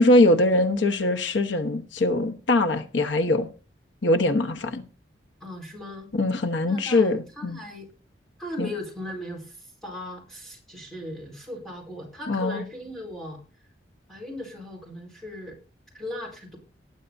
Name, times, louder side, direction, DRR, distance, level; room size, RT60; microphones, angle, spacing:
voice 1, 0.0-3.5 4.0-4.8 6.1-7.6 8.6-8.7 12.3-12.6, left 2 dB, 85° left, 1.0 m, -22 dB
voice 2, 5.4-6.1 6.7-7.9 8.4-13.4 14.1-15.6 15.9-16.6, left 1 dB, ahead, 4.3 m, -38 dB
19.0 x 9.3 x 2.7 m
head